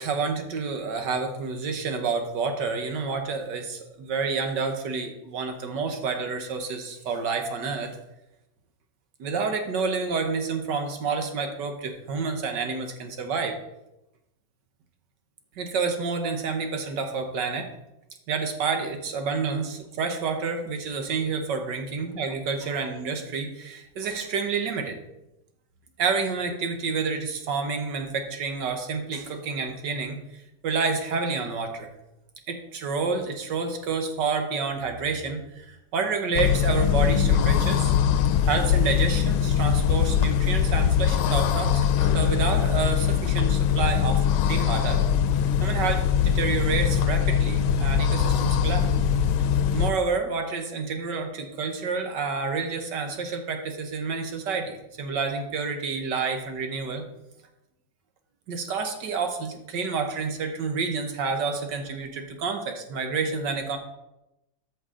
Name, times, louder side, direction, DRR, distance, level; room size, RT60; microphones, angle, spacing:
voice 1, 0.0-7.9 9.2-13.5 15.6-17.7 18.3-25.0 26.0-30.2 30.6-31.9 32.5-37.9 38.5-45.0 45.6-48.9 49.7-57.0 58.5-63.8, right 4 dB, 65° right, 5 dB, 1.5 m, -29 dB
sound 1, 36.3-49.9, left 8 dB, 85° left, 1.4 m, -22 dB
13.5 x 5.5 x 3.7 m, 0.92 s
omnidirectional pair, 2.2 m